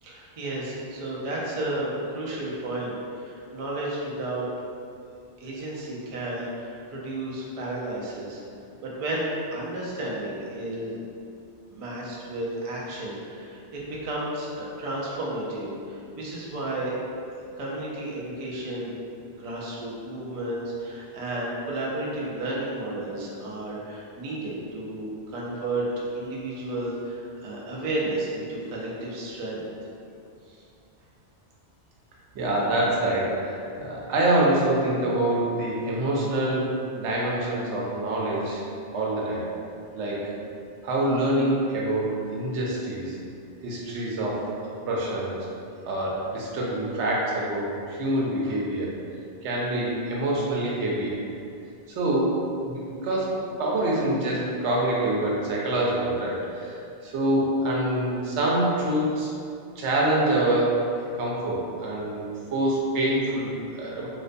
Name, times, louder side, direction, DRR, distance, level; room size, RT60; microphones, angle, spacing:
voice 1, 0.0-4.5 5.4-8.4 8.8-11.0 11.7-16.9 17.4-18.9 19.3-29.7 30.5-30.6, right 1 dB, 60° right, -5 dB, 0.3 m, -32 dB
voice 2, 32.3-38.6 38.9-39.4 39.9-40.3 40.8-43.2 43.6-44.5 44.9-45.5 45.8-48.9 49.4-51.1 51.9-52.4 52.6-59.3 59.8-60.8 61.2-62.2 62.5-64.1, right 1 dB, 85° right, -4 dB, 0.9 m, -26 dB
2.4 x 2.1 x 2.5 m, 2.5 s
omnidirectional pair, 1.1 m